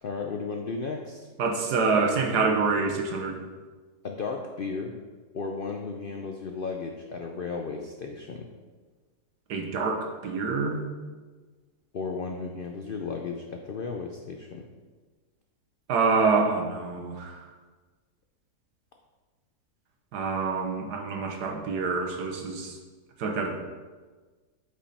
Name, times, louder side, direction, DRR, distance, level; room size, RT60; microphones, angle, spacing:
voice 1, 0.0-1.3 4.0-4.9 5.3-8.5 11.9-14.6, left 4 dB, 90° left, 2 dB, 0.4 m, -34 dB
voice 2, 1.4-3.4 9.5-10.8 15.9-17.4 20.1-22.7 23.2-23.6, right 4 dB, 90° right, 2 dB, 1.6 m, -26 dB
8.5 x 5.3 x 4.2 m, 1.4 s
omnidirectional pair, 1.7 m